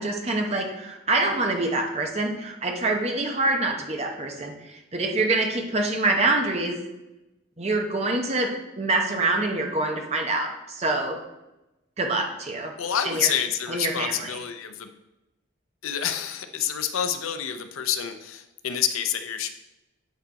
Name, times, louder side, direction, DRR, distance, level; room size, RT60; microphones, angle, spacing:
voice 1, 0.0-6.8 7.6-8.5 8.8-11.2 12.0-12.7 13.0-13.3 13.7-14.4, right 2 dB, 30° right, 2 dB, 0.8 m, -25 dB
voice 2, 12.8-14.9 15.8-19.5, left 9 dB, 85° left, 8 dB, 0.5 m, -28 dB
8.3 x 4.0 x 4.1 m, 0.97 s
head